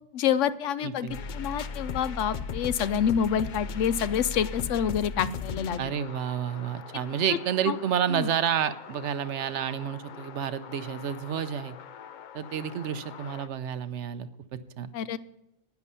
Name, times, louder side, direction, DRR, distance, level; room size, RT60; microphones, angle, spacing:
voice 1, 0.1-5.9 7.7-7.8 8.1-8.3 14.9-15.2, left 8 dB, 75° left, 15 dB, 0.9 m, -27 dB
voice 2, 0.8-1.2 5.8-11.8 12.3-14.9, right 9 dB, 70° right, 13 dB, 0.9 m, -30 dB
sound 1, 1.1-13.5, left 5 dB, 60° left, 0.5 m, -39 dB
10.5 x 9.9 x 5.6 m, 0.85 s
omnidirectional pair, 1.3 m